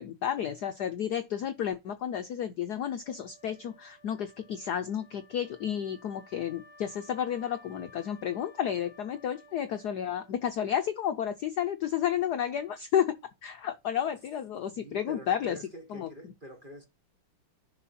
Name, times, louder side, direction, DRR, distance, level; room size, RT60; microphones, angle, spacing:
voice 1, 0.0-13.1 13.4-15.6 15.9-16.3, left 9 dB, 70° left, 1.0 m, -31 dB
Wind instrument woodwind instrument, 3.0-10.6, left 1 dB, 55° right, 3.3 m, -57 dB
voice 2, 14.7-16.9, equal, 30° right, 1.2 m, -46 dB
11.0 x 5.5 x 4.3 m
omnidirectional pair, 2.4 m